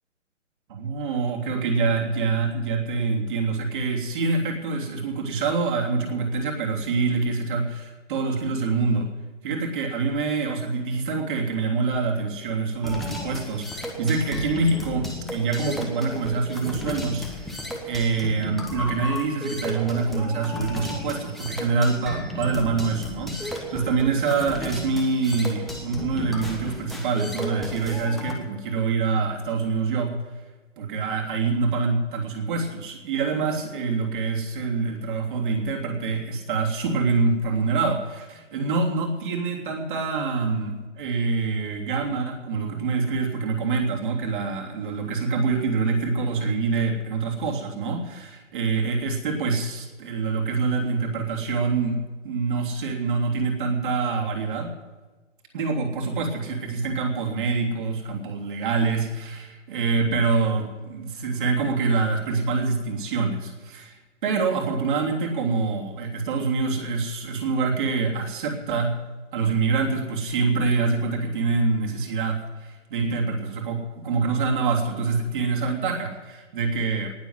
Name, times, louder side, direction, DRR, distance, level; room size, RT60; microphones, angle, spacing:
voice 1, 0.7-9.1 9.4-17.6 17.8-30.2 30.8-54.7 55.5-69.0 69.3-77.1, right 4 dB, 40° right, 0 dB, 3.4 m, -25 dB
sound 1, 12.8-28.3, left 2 dB, ahead, 1.4 m, -34 dB
19.0 x 7.3 x 9.6 m, 1.3 s
figure-of-eight pair, 135°, 37 cm